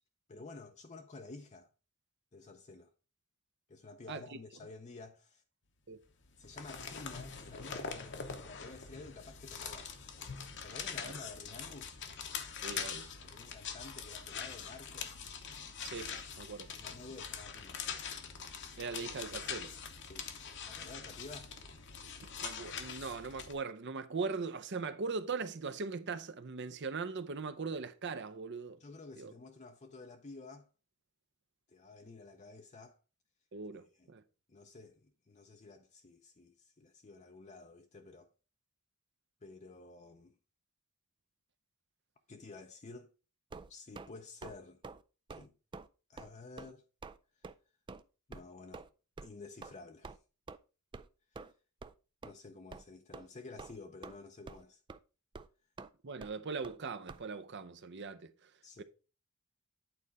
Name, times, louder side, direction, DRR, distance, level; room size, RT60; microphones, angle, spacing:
voice 1, 0.3-1.7 2.3-2.9 3.7-5.4 6.4-10.0 10.6-12.0 13.2-15.1 16.7-17.8 20.0-20.3 20.7-21.5 28.8-30.7 31.7-33.0 34.0-34.1 34.5-38.3 39.4-40.4 42.3-43.1 43.7-44.8 45.3-45.5 46.1-46.8 47.4-47.5 48.3-48.9 49.2-50.2 51.3-51.5 52.2-54.8 58.6-58.8, left 3 dB, 30° left, 0.6 m, -51 dB
voice 2, 4.1-4.4 5.9-6.0 11.0-11.1 12.6-13.1 15.8-16.7 18.8-19.8 22.4-28.8 29.2-29.3 33.5-34.2 56.0-58.5 58.8-58.9, right 4 dB, 55° right, 0.7 m, -40 dB
sound 1, 6.2-23.5, left 6 dB, 55° left, 1.0 m, -43 dB
sound 2, 43.5-44.1 44.4-44.6 44.8-45.0 45.3-45.5 45.7-45.9 46.2-46.3 46.6-46.7 47.0-47.2 47.4-47.5 47.9-48.0 48.3-48.4 48.7-48.9 49.2-49.3 49.6-49.7 50.0-50.2 50.5-50.6 50.9-51.1 51.3-51.5 51.8-51.9 52.2-52.3 52.7-52.8 53.1-53.3 53.6-54.2 54.5-54.6 54.9-55.0 55.3-55.5 55.8-55.9 56.2-56.3 56.6-56.8 57.1-57.2, right 4 dB, 20° right, 0.3 m, -47 dB
8.7 x 4.2 x 4.8 m
head